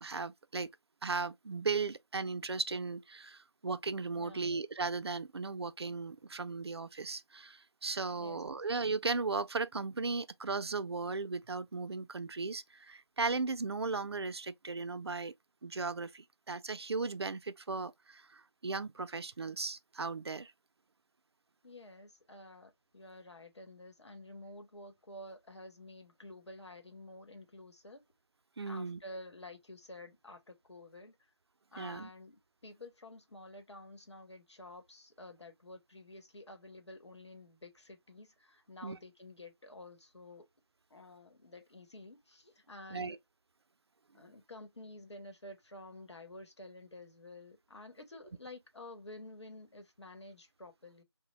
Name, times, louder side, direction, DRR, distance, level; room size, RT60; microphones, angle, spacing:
voice 1, 0.0-0.7 1.0-15.3 15.6-20.5 28.6-29.0 31.8-32.1 38.8-39.0 42.9-43.2, right 4 dB, 65° right, 0.4 m, -36 dB
voice 2, 4.1-4.5 8.2-8.6 21.6-28.0 28.6-31.1 31.7-40.4 40.9-43.2 44.1-51.0, left 1 dB, 80° left, 1.0 m, -51 dB
3.2 x 2.1 x 3.0 m
figure-of-eight pair, 175°, 14 cm